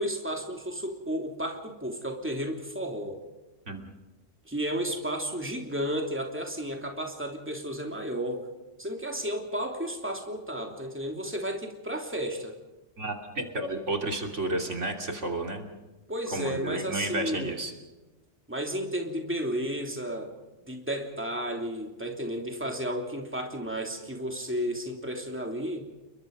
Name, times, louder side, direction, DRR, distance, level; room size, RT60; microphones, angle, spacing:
voice 1, 0.0-3.2 4.4-8.5 8.8-12.5 16.1-17.6 18.5-20.3 20.7-25.8, equal, 10° right, 2 dB, 3.0 m, -33 dB
voice 2, 13.0-15.7 16.3-17.7, right 2 dB, 75° right, 3 dB, 3.3 m, -31 dB
30.0 x 22.0 x 5.4 m, 1.1 s
omnidirectional pair, 1.2 m